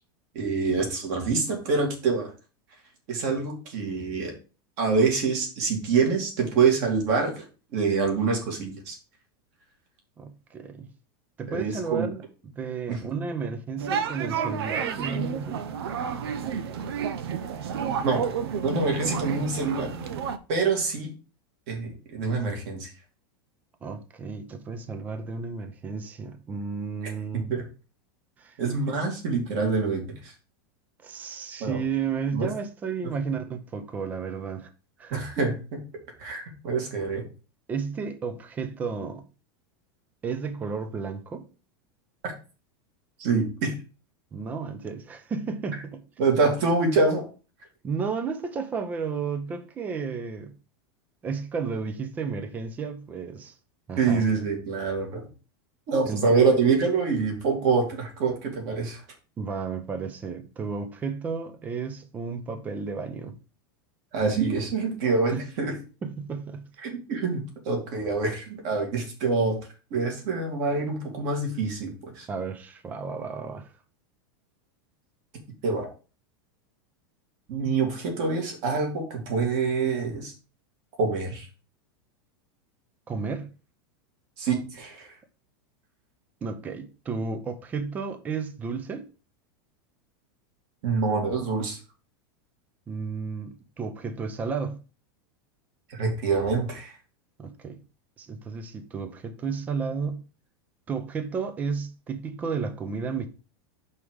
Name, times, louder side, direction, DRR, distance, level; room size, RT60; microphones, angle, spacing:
voice 1, 0.3-2.3 3.1-4.3 4.8-7.4 7.7-9.0 11.5-12.1 12.9-13.0 17.9-18.2 18.6-20.0 20.5-21.1 21.7-22.9 27.0-27.6 28.6-30.3 31.6-31.8 32.3-32.5 35.1-35.5 36.2-37.2 43.2-43.7 46.2-47.2 54.0-55.2 55.9-59.0 64.1-65.8 66.8-69.6 69.9-72.3 75.6-75.9 77.5-80.3 81.0-81.5 84.4-85.1 90.8-91.8 95.9-97.0, right 4 dB, 40° right, 2.9 m, -26 dB
voice 2, 10.2-10.9 11.4-15.6 23.8-27.5 28.4-28.6 31.0-34.7 35.0-35.3 37.7-39.2 40.2-41.5 44.3-46.0 47.8-50.5 51.2-53.5 53.9-54.3 56.1-56.4 59.4-63.4 66.0-66.7 72.3-73.7 83.1-83.5 86.4-89.1 92.9-94.8 97.4-97.8 98.2-100.2 100.9-103.3, right 5 dB, 10° right, 0.6 m, -32 dB
sound 1, 13.8-20.4, right 7 dB, 80° right, 1.0 m, -31 dB
5.4 x 4.9 x 6.2 m
supercardioid pair, 175°, 13 cm